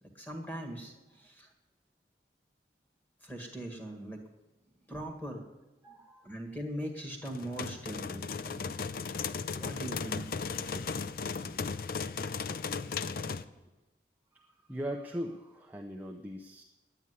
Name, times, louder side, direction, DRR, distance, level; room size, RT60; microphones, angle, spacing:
voice 1, 0.0-1.5 3.2-4.2 4.9-5.4 6.2-8.7 9.6-10.3 10.8-10.9 11.5-11.6 13.0-13.4, right 1 dB, 10° left, 3 dB, 1.9 m, -41 dB
voice 2, 5.8-6.4 14.3-16.6, equal, 10° right, 0 dB, 0.6 m, -40 dB
sound 1, 7.3-13.4, left 5 dB, 55° left, 0.5 m, -36 dB
9.7 x 8.9 x 9.7 m, 1.1 s
head